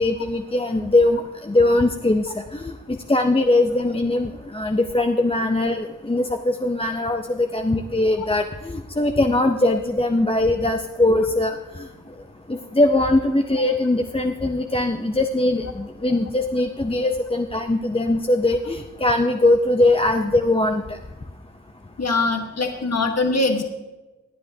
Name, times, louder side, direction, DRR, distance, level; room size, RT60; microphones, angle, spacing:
voice 1, 0.0-11.9 12.5-21.0, left 2 dB, 20° left, 4 dB, 0.6 m, -21 dB
voice 2, 22.0-23.6, left 3 dB, 60° left, 4 dB, 1.3 m, -22 dB
18.5 x 9.9 x 2.7 m, 1.1 s
wide cardioid pair, 60°, 30 cm